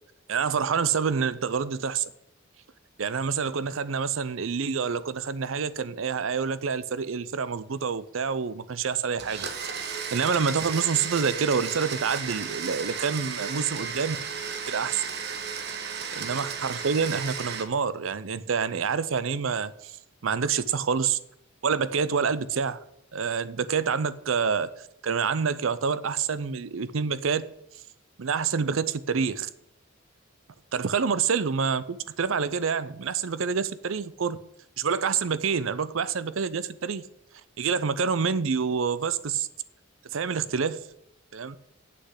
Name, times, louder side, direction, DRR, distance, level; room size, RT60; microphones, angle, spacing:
voice 1, 0.3-2.0 3.0-9.5 10.1-14.2 14.7-15.1 16.1-20.0 20.2-21.2 21.6-22.8 23.1-27.5 28.2-29.5 30.7-34.4 34.8-37.1 37.6-39.5 40.1-40.9 41.3-41.6, right 6 dB, 75° right, 0.6 m, -27 dB
Domestic sounds home sounds, 9.2-17.6, right 6 dB, 55° right, 1.2 m, -34 dB
7.8 x 6.6 x 8.1 m
head